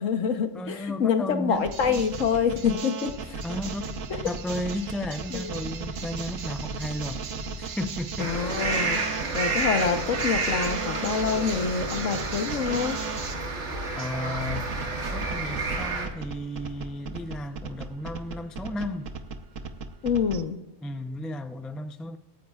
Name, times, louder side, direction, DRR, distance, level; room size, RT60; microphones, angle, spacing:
voice 1, 0.0-3.4 5.3-5.5 8.2-9.0 9.3-13.0 20.0-20.6, left 6 dB, 75° left, 1.4 m, -26 dB
voice 2, 0.5-2.1 3.4-3.8 4.2-7.3 7.6-8.3 14.0-14.8 15.1-19.1 20.8-22.2, left 1 dB, ahead, 0.3 m, -34 dB
sound 1, 1.5-13.3 14.5-20.4, right 5 dB, 85° right, 1.4 m, -36 dB
sound 2, 8.2-16.1, right 3 dB, 65° right, 2.2 m, -30 dB
26.0 x 9.6 x 2.4 m
omnidirectional pair, 1.3 m